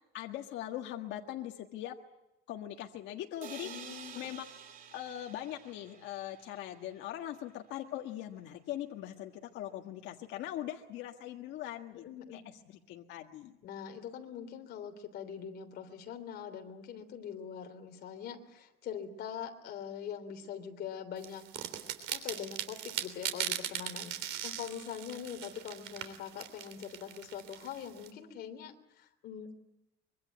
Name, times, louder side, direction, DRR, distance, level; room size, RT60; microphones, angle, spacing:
voice 1, 0.1-2.0 2.5-3.7 4.1-4.4 4.9-12.0 12.3-12.4 12.7-13.6, left 12 dB, 75° left, 3 dB, 1.6 m, -41 dB
sound 1, 3.4-7.2, right 8 dB, 45° right, 3.0 m, -50 dB
voice 2, 3.6-4.3 12.0-12.4 13.6-21.5 22.1-29.5, left 8 dB, 55° left, 6 dB, 3.3 m, -43 dB
sound 2, 21.2-28.1, right 11 dB, 85° right, 3.3 m, -39 dB
24.5 x 23.0 x 9.3 m, 0.90 s
cardioid pair, 150°, 19 cm